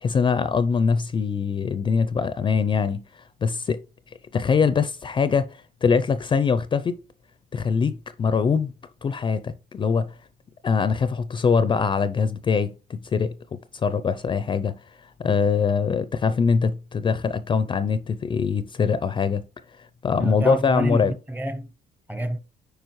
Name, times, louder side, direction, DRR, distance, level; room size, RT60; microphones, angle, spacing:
voice 1, 0.0-3.8 4.3-6.9 7.5-8.7 9.0-10.1 10.6-14.7 15.2-19.4 20.0-21.1, left 5 dB, 30° left, 0.4 m, -23 dB
voice 2, 20.2-21.7 22.1-22.4, right 1 dB, 10° right, 0.6 m, -28 dB
9.3 x 4.9 x 3.0 m
cardioid pair, 110°, 17 cm